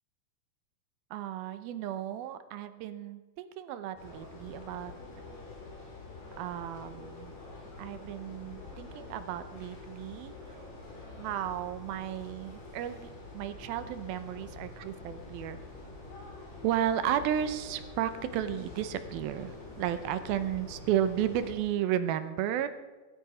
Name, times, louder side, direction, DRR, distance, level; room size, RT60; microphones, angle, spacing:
voice 1, 1.1-4.9 6.4-7.3 7.8-10.6 11.2-15.6 16.6-22.7, right 10 dB, 80° right, 11 dB, 2.6 m, -33 dB
sound 1, 4.0-21.5, left 3 dB, 85° left, 6.4 m, -46 dB
21.0 x 12.5 x 4.9 m, 1.3 s
omnidirectional pair, 4.4 m